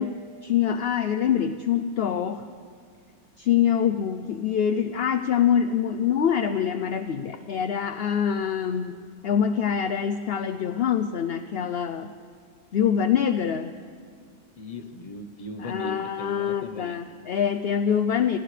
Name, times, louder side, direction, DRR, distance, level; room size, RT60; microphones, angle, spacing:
voice 1, 0.0-2.5 3.4-12.1 12.7-13.7 15.6-18.4, left 8 dB, 55° left, 10 dB, 0.7 m, -25 dB
voice 2, 14.6-17.0, left 1 dB, 25° left, 8 dB, 1.0 m, -38 dB
29.5 x 28.0 x 3.4 m, 2.2 s
omnidirectional pair, 1.6 m